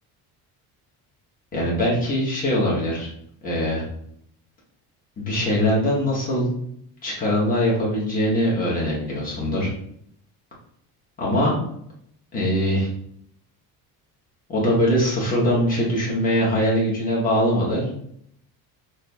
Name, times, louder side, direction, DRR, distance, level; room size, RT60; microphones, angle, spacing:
voice 1, 1.5-3.1 3.4-3.8 5.2-6.5 7.0-9.7 11.2-11.5 12.3-12.9 14.5-17.9, equal, 20° left, -5 dB, 1.0 m, -22 dB
5.9 x 2.5 x 2.2 m, 0.70 s
cardioid pair, 180°, 39 cm